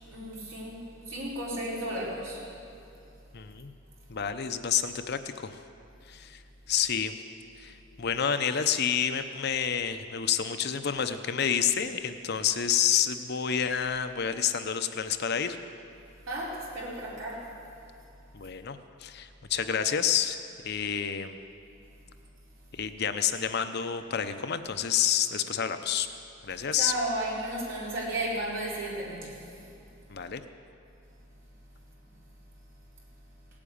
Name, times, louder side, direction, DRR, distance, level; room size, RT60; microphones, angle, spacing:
voice 1, 0.1-0.8 1.1-2.4 16.3-17.5 26.7-29.3, right 1 dB, 60° right, -6 dB, 4.5 m, -33 dB
voice 2, 3.3-3.7 4.1-5.6 6.1-6.4 6.7-7.1 7.6-15.6 18.3-20.4 20.6-21.4 22.7-26.1 26.4-26.9 30.1-30.4, left 8 dB, 50° left, 9 dB, 0.6 m, -29 dB
17.5 x 8.8 x 8.7 m, 2.6 s
head